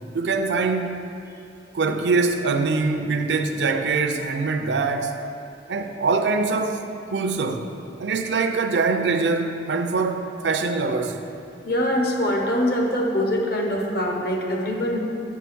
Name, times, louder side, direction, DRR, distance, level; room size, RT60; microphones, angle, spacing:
voice 1, 0.1-1.0 1.7-5.2 5.7-6.8 7.1-7.7 8.0-11.2, right 4 dB, 80° right, 6 dB, 0.5 m, -23 dB
voice 2, 11.6-15.0, equal, 60° left, 0 dB, 1.1 m, -23 dB
7.5 x 4.6 x 6.2 m, 2.6 s
head